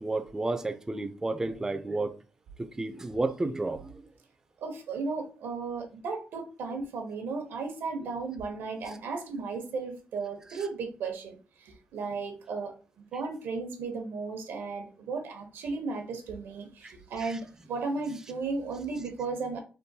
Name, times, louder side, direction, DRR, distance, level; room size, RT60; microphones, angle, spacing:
voice 1, 0.0-2.2 2.6-4.0 8.9-9.0 10.5-10.7 16.8-17.4, right 2 dB, 15° right, 0.3 m, -32 dB
voice 2, 4.6-19.6, right 4 dB, 90° right, 0.8 m, -35 dB
3.7 x 2.2 x 2.7 m
cardioid pair, 105°, 4 cm